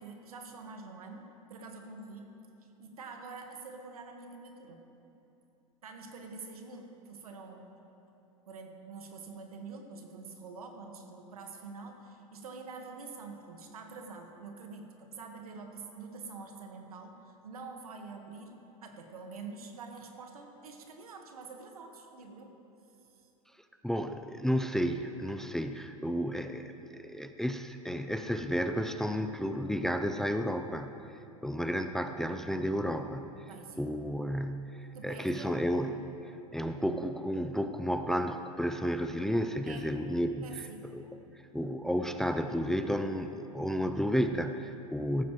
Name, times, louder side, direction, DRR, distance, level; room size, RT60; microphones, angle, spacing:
voice 1, 0.0-2.4 2.8-4.8 5.8-7.8 8.5-22.6 23.1-23.3 33.5-33.9 34.9-35.6 39.7-40.0 40.4-40.8, right 4 dB, 80° right, 3 dB, 1.6 m, -46 dB
voice 2, 23.8-30.9 31.4-33.4 33.8-36.0 36.5-40.6 40.9-41.1 41.5-45.2, equal, ahead, 8 dB, 0.5 m, -32 dB
17.0 x 14.0 x 3.1 m, 2.9 s
hypercardioid pair, 95°, 19 cm